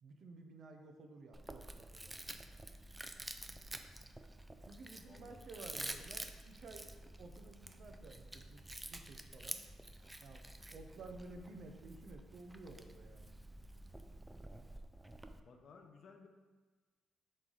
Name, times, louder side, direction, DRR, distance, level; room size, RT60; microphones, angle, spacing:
voice 1, 0.0-2.1 4.6-8.6 8.9-9.6 10.2-13.3, right 3 dB, 60° right, 5 dB, 0.7 m, -54 dB
Chewing mastication, 1.3-15.4, right 1 dB, 10° right, 0.4 m, -49 dB
voice 2, 5.0-5.4 5.7-6.0 15.4-16.3, left 4 dB, 60° left, 4 dB, 0.7 m, -58 dB
7.6 x 3.2 x 3.9 m, 1.3 s
cardioid pair, 90°, 0 cm